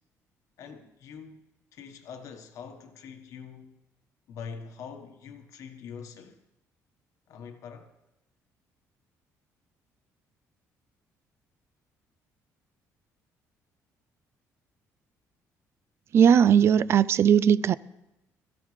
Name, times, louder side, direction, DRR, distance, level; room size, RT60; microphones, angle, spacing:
voice 1, 0.6-1.4 1.7-3.8 4.3-6.4 7.3-7.9, left 6 dB, 60° left, 1.2 m, -44 dB
voice 2, 16.1-17.8, right 8 dB, 45° right, 0.4 m, -19 dB
21.5 x 14.5 x 3.2 m
cardioid pair, 140°, 6 cm